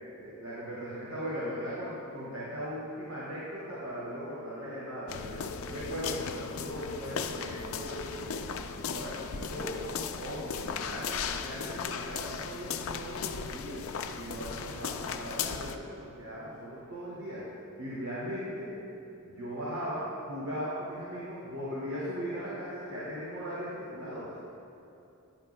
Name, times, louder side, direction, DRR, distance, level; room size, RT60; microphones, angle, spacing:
voice 1, 0.2-17.4 17.8-18.7 19.2-24.4, equal, 80° right, -9 dB, 2.2 m, -38 dB
sound 1, 5.1-15.8, left 6 dB, 75° left, 0.5 m, -37 dB
13.5 x 10.5 x 2.2 m, 2.8 s
head